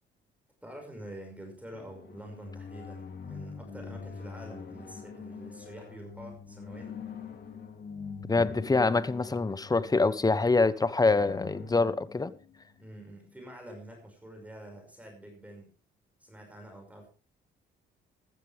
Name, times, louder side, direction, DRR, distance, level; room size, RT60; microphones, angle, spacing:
voice 1, 0.6-6.9 12.8-15.7 16.2-17.1, right 1 dB, 5° right, 5.8 m, -47 dB
sound 1, 1.7-13.4, left 5 dB, 55° left, 3.3 m, -44 dB
voice 2, 8.3-12.3, left 3 dB, 20° left, 1.0 m, -25 dB
15.0 x 13.5 x 3.5 m
cardioid pair, 90°, 20 cm